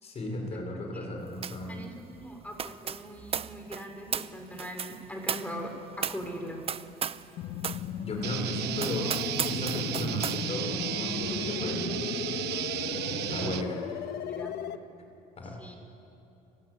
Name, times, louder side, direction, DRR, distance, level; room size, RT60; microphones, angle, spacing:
voice 1, 0.0-1.8 8.0-9.1 9.4-12.0 13.3-13.8 15.4-15.6, left 2 dB, 40° left, 3 dB, 5.9 m, -35 dB
sound 1, 1.4-1.7 2.0-7.3 7.6-7.9 8.3-8.4 8.8-10.4, right 7 dB, 35° right, 0.8 m, -35 dB
voice 2, 1.7-6.6 14.3-14.5 15.6-15.8, equal, 10° left, 4 dB, 3.7 m, -41 dB
sound 2, 7.4-14.8, left 9 dB, 75° left, 1.3 m, -36 dB
sound 3, 8.2-13.6, right 13 dB, 75° right, 1.0 m, -33 dB
29.5 x 16.5 x 9.9 m, 2.8 s
cardioid pair, 110°, 17 cm